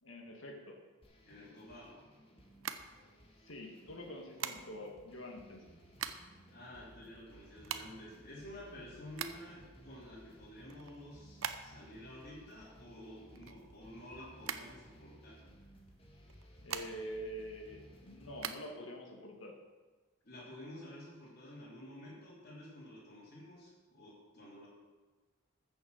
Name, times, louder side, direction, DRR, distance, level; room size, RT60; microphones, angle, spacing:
voice 1, 0.0-0.8 3.4-5.7 16.6-19.6, equal, 75° left, 2 dB, 2.2 m, -46 dB
sound 1, 1.0-18.5, equal, 30° left, 2.0 m, -59 dB
voice 2, 1.2-2.0 6.5-15.4 20.2-24.7, left 1 dB, 50° left, -7 dB, 3.4 m, -51 dB
sound 2, 2.5-3.5 4.4-5.0 5.6-6.4 6.7-6.8 7.0-9.7 10.1-12.0 12.2-14.1 14.4-15.4 16.2-17.2 17.6-18.6, right 8 dB, 85° right, 0.8 m, -42 dB
14.5 x 6.9 x 6.9 m, 1.3 s
head